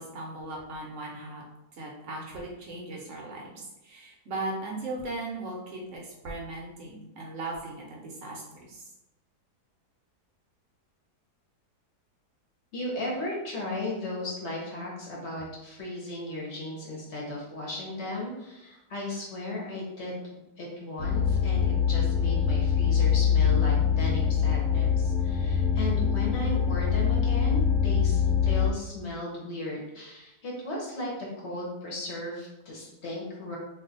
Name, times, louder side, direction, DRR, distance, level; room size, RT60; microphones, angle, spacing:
voice 1, 0.0-1.4 1.8-8.8, right 2 dB, 60° right, -2 dB, 0.8 m, -38 dB
voice 2, 12.7-20.2 20.6-33.6, left 1 dB, 50° left, -3 dB, 0.9 m, -36 dB
sound 1, 21.0-28.7, left 7 dB, 85° left, 1.2 m, -24 dB
2.6 x 2.3 x 3.9 m, 0.92 s
omnidirectional pair, 1.8 m